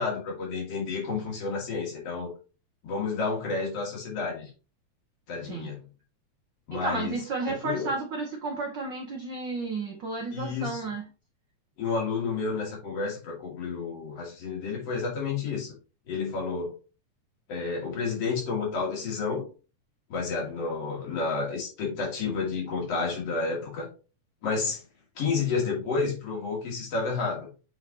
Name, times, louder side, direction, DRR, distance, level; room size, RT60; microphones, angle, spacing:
voice 1, 0.0-2.3 2.8-4.5 5.3-5.8 6.7-7.1 7.5-7.9 10.3-10.8 11.8-15.7 16.1-16.7 17.5-19.4 20.1-23.9 24.4-24.8 25.2-27.5, left 4 dB, 55° left, -3 dB, 3.3 m, -30 dB
voice 2, 5.4-5.7 6.7-11.1, right 3 dB, 80° right, 2 dB, 1.0 m, -32 dB
7.5 x 4.4 x 2.9 m, 0.34 s
omnidirectional pair, 3.5 m